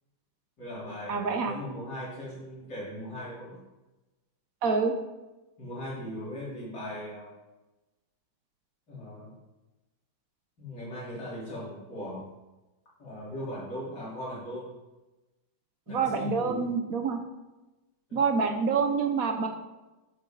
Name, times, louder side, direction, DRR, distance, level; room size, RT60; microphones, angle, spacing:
voice 1, 0.6-3.6 5.6-7.3 8.9-9.3 10.6-12.2 13.0-14.7 15.9-16.7 18.1-18.2, equal, 50° left, -8 dB, 4.3 m, -39 dB
voice 2, 1.1-1.5 4.6-4.9 15.9-17.2 18.1-19.5, right 5 dB, 55° right, 5 dB, 1.0 m, -26 dB
12.0 x 7.5 x 4.0 m, 1.1 s
omnidirectional pair, 2.3 m